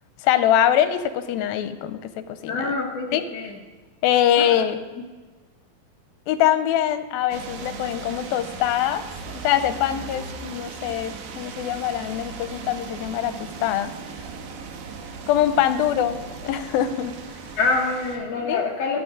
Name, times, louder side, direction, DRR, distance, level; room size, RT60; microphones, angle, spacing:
voice 1, 0.2-2.7 3.1-3.2 4.0-4.8 6.3-13.9 15.3-17.2 18.5-18.6, left 11 dB, 90° left, 11 dB, 2.5 m, -23 dB
voice 2, 2.5-3.5 4.4-4.5 17.5-19.0, left 4 dB, 70° left, 0 dB, 1.6 m, -25 dB
sound 1, 7.3-18.2, right 5 dB, 70° right, 2.7 m, -38 dB
19.0 x 7.5 x 3.7 m, 1.4 s
omnidirectional pair, 4.2 m